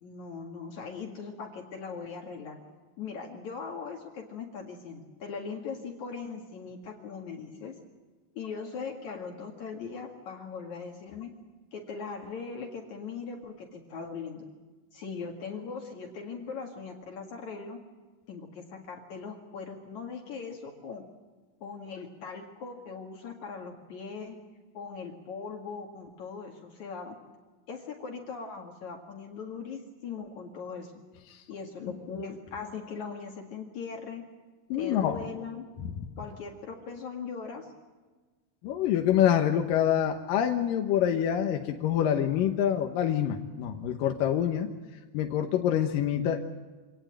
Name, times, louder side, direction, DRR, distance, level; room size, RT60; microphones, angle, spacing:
voice 1, 0.0-2.6 3.0-7.7 8.3-11.3 11.7-14.4 14.9-17.8 18.3-21.0 21.6-24.4 24.7-27.2 27.7-30.9 31.5-34.2 34.8-35.7 36.2-37.7, left 5 dB, 60° left, 2 dB, 3.2 m, -40 dB
voice 2, 34.7-35.2 38.6-44.7 45.1-46.4, left 10 dB, 80° left, 4 dB, 2.8 m, -26 dB
26.0 x 18.5 x 9.0 m, 1.3 s
omnidirectional pair, 4.0 m